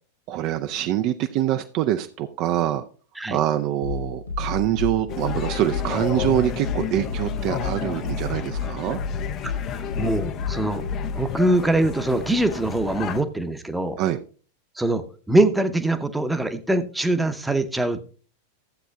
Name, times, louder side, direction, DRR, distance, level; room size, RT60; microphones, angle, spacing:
voice 1, 0.3-2.8 3.3-9.0 14.0-14.2, right 12 dB, 40° right, 8 dB, 0.5 m, -25 dB
sound 1, 3.8-11.3, left 5 dB, 85° left, 4.2 m, -31 dB
sound 2, 5.1-13.2, left 9 dB, 35° left, 0.6 m, -32 dB
voice 2, 10.0-10.8 11.1-14.0 14.8-18.0, right 1 dB, 5° right, 9 dB, 0.8 m, -23 dB
15.0 x 7.9 x 2.3 m, 0.38 s
figure-of-eight pair, 90°, 0 cm